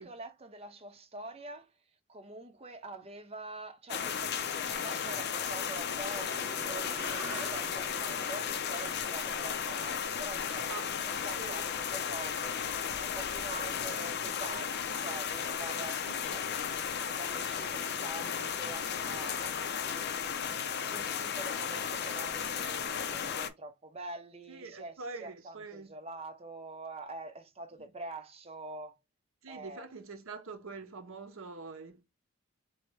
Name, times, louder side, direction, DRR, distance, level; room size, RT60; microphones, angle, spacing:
voice 1, 0.0-1.8 2.1-16.5 16.7-19.9 20.9-24.9 25.2-29.0 29.5-29.9, right 2 dB, 30° right, 0.7 m, -45 dB
sound 1, 3.9-23.5, left 7 dB, 50° left, 0.5 m, -34 dB
sound 2, 5.8-10.4, right 2 dB, 10° right, 1.8 m, -47 dB
voice 2, 11.4-11.7 16.0-16.4 24.5-25.9 29.4-32.0, right 4 dB, 70° right, 0.8 m, -45 dB
4.5 x 2.8 x 3.2 m
head